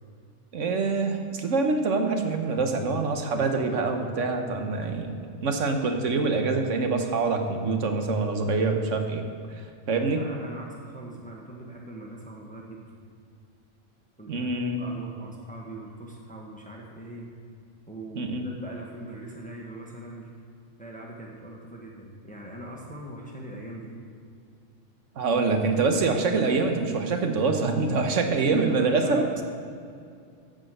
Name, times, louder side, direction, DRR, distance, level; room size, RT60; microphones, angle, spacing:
voice 1, 0.5-9.2 9.9-10.2 14.3-14.9 18.1-18.4 25.2-29.4, right 3 dB, 75° right, 5 dB, 1.4 m, -25 dB
voice 2, 10.1-13.0 14.2-14.5 14.8-17.3 17.9-20.3 20.8-23.9 28.7-29.4, right 1 dB, 5° left, -2 dB, 1.3 m, -41 dB
12.0 x 5.1 x 7.8 m, 2.3 s
omnidirectional pair, 1.3 m